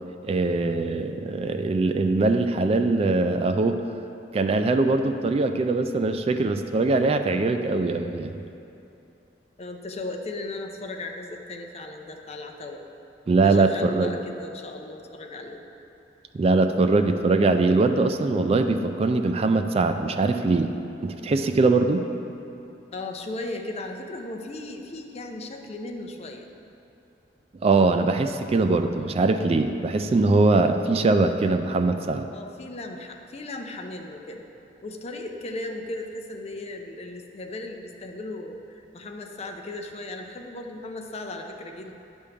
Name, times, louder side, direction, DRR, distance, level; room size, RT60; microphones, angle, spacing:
voice 1, 0.2-3.8 4.3-8.4 13.3-14.1 16.3-20.7 21.0-22.0 27.6-32.3, right 3 dB, 35° right, 7 dB, 0.3 m, -22 dB
voice 2, 9.6-12.8 13.4-15.6 22.9-26.5 30.9-31.2 32.3-34.4 34.8-41.9, left 2 dB, 35° left, 3 dB, 0.6 m, -36 dB
10.0 x 3.5 x 6.8 m, 2.9 s
head